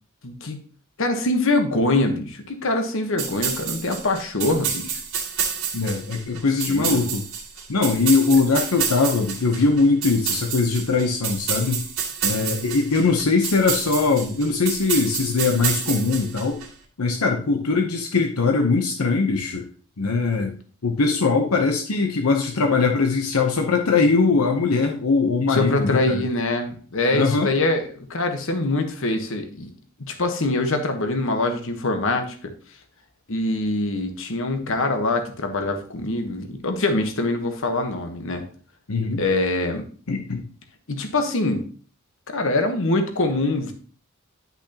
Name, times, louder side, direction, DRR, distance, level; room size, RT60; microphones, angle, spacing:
voice 1, 0.2-0.6 1.0-5.0 6.7-7.0 25.5-29.7 30.0-32.3 33.3-38.4 39.2-39.8 40.9-41.6 42.3-43.7, left 2 dB, 65° left, 6 dB, 1.2 m, -24 dB
sound 1, 3.2-16.7, right 7 dB, 70° right, 1.8 m, -29 dB
voice 2, 5.7-7.2 7.7-11.9 12.2-16.6 17.0-19.7 20.0-20.5 20.8-26.2 27.1-27.5 38.9-39.2 40.1-40.4, left 4 dB, 80° left, 3 dB, 0.8 m, -21 dB
10.5 x 5.8 x 2.9 m, 0.43 s
head